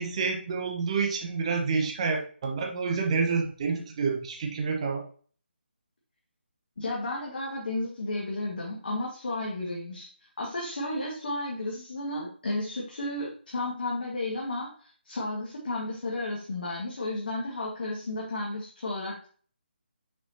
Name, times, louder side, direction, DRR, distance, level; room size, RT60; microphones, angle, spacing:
voice 1, 0.0-5.0, right 4 dB, 35° right, 2 dB, 1.2 m, -28 dB
voice 2, 6.8-19.3, left 2 dB, 55° left, -4 dB, 2.0 m, -33 dB
6.3 x 6.1 x 2.9 m, 0.43 s
figure-of-eight pair, 150°, 6 cm